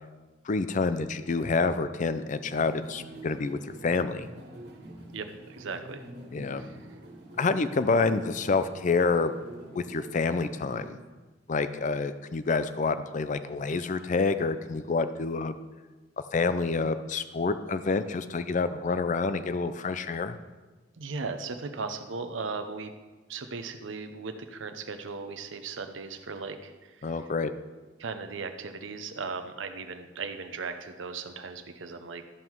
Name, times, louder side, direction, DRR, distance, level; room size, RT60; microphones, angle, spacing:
voice 1, 0.4-4.3 6.3-6.6 7.4-9.3 9.8-10.9 11.5-15.6 16.3-20.4 27.0-27.5, left 4 dB, 40° left, 11 dB, 0.5 m, -28 dB
sound 1, 2.4-10.9, right 1 dB, 55° right, 1.8 m, -46 dB
voice 2, 5.1-6.1 6.5-6.8 21.0-22.9 23.3-27.3 28.0-32.3, right 4 dB, 75° right, 7 dB, 0.7 m, -37 dB
13.0 x 5.6 x 4.6 m, 1.3 s
head